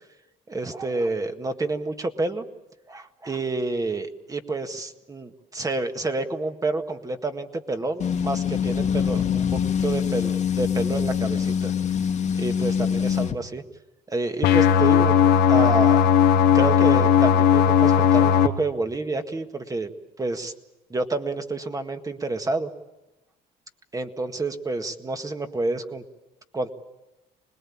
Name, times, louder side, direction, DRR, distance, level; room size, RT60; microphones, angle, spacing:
voice 1, 0.5-2.4 2.9-11.7 12.4-13.6 14.1-15.2 15.5-16.0 16.5-19.9 20.2-20.5 20.9-22.7 23.9-26.0 26.5-26.7, right 2 dB, 20° right, 7 dB, 1.8 m, -29 dB
sound 1, 8.0-13.4, left 7 dB, 45° left, 1.7 m, -24 dB
sound 2, 14.4-18.5, left 8 dB, 80° left, 1.5 m, -17 dB
26.0 x 20.0 x 8.7 m, 1.0 s
cardioid pair, 110°, 17 cm